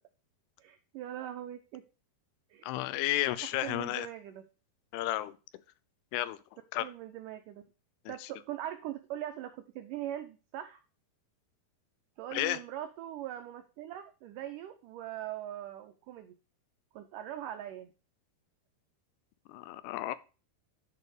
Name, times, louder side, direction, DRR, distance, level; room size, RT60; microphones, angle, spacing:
voice 1, 0.6-1.8 2.5-2.7 3.4-4.4 6.8-7.6 8.1-10.8 12.2-16.4 16.9-17.9, right 12 dB, 90° right, 7 dB, 1.8 m, -41 dB
voice 2, 2.6-4.1 4.9-5.4 6.1-6.4 6.7-6.9 8.1-8.2 12.3-12.6 19.5-20.2, left 15 dB, 85° left, 15 dB, 2.7 m, -32 dB
10.5 x 4.4 x 4.8 m, 0.33 s
omnidirectional pair, 4.7 m